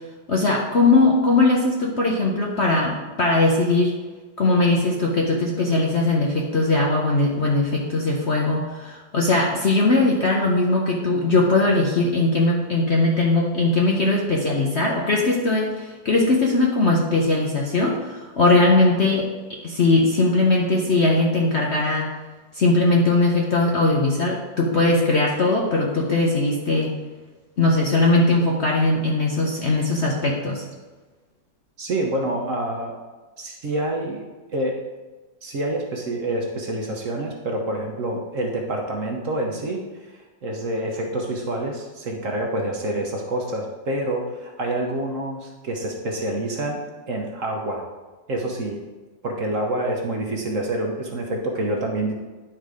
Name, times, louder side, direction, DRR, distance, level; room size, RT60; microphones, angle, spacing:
voice 1, 0.3-3.9 4.4-19.3 19.6-22.1 22.5-26.9 27.6-30.6, left 2 dB, 50° left, -1 dB, 0.9 m, -20 dB
voice 2, 31.8-33.0 33.4-34.2 34.5-34.8 35.4-46.8 47.1-47.8 48.3-48.8 49.2-52.1, right 1 dB, 50° right, 0 dB, 1.1 m, -27 dB
10.0 x 4.0 x 4.9 m, 1.3 s
omnidirectional pair, 2.0 m